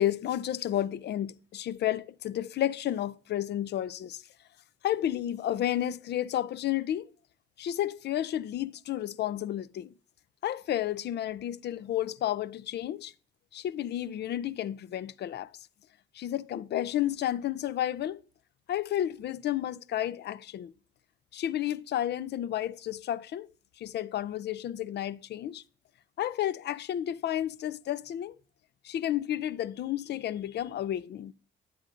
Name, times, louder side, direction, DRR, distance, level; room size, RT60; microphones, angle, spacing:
voice 1, 0.0-4.2 4.8-7.1 7.6-9.9 10.4-13.1 13.5-15.5 16.1-18.2 18.7-20.7 21.3-23.5 23.8-25.6 26.2-28.4 28.8-31.3, left 12 dB, 60° left, 0.5 m, -31 dB
10.5 x 8.6 x 2.5 m
cardioid pair, 90°, 20 cm